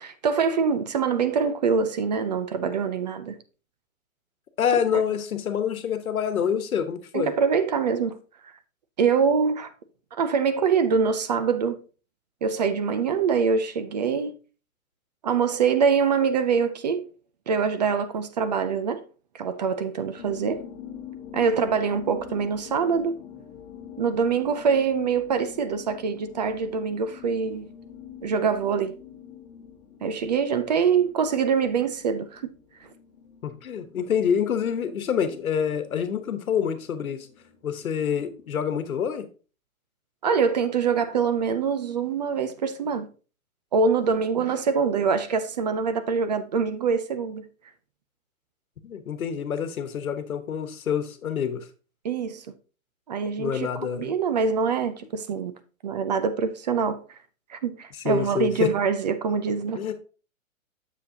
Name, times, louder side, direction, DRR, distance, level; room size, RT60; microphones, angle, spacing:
voice 1, 0.0-3.4 4.9-5.0 7.1-8.2 9.0-9.7 10.1-11.8 12.4-14.3 15.2-17.1 17.5-19.0 19.3-20.6 21.3-23.2 24.0-27.7 28.2-28.9 30.0-32.4 40.2-43.1 43.7-47.4 52.0-52.5 53.1-53.7 53.9-55.5 55.8-57.0 57.5-59.8, right 5 dB, 30° right, 0.5 m, -24 dB
voice 2, 4.6-7.3 33.4-37.3 37.6-39.3 48.8-51.7 53.4-54.1 58.0-58.7 59.7-59.9, left 8 dB, 85° left, 1.2 m, -27 dB
sound 1, 20.2-38.9, left 8 dB, 15° left, 1.6 m, -46 dB
7.0 x 6.9 x 2.8 m
hypercardioid pair, 150°, 41 cm